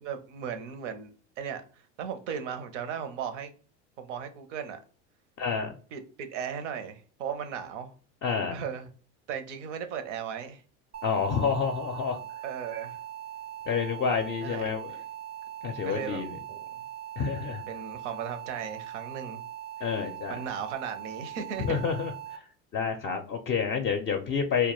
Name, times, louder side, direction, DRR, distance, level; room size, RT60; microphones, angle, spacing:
voice 1, 0.0-3.5 4.0-4.8 5.9-7.9 8.5-8.9 9.3-10.6 12.4-13.0 14.4-14.7 15.8-16.2 16.5-16.8 17.7-19.4 20.3-21.9, right 7 dB, 85° right, 0.6 m, -36 dB
voice 2, 5.4-5.7 8.2-8.5 11.0-12.2 13.7-14.9 15.6-16.3 17.2-17.6 19.8-20.4 21.6-22.4 22.7-24.7, left 6 dB, 35° left, 0.4 m, -29 dB
sound 1, 10.9-22.4, right 12 dB, 30° right, 0.4 m, -41 dB
2.2 x 2.1 x 2.9 m
supercardioid pair, 105°, 35 cm